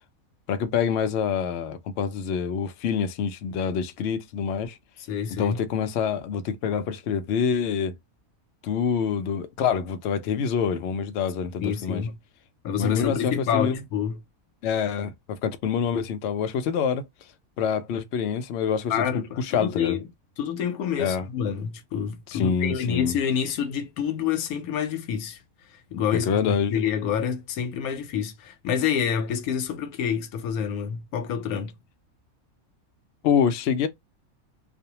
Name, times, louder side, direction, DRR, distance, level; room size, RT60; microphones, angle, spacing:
voice 1, 0.5-4.8 5.4-7.9 8.6-12.0 12.8-13.8 14.6-17.0 17.6-18.9 19.4-20.0 21.0-21.3 22.3-23.1 26.3-26.7 33.2-33.9, left 7 dB, 65° left, 0.7 m, -26 dB
voice 2, 5.1-5.6 11.6-12.2 12.6-14.2 18.9-20.1 20.4-25.4 25.7-31.7, left 8 dB, 85° left, 1.1 m, -28 dB
2.5 x 2.1 x 2.8 m
omnidirectional pair, 1.5 m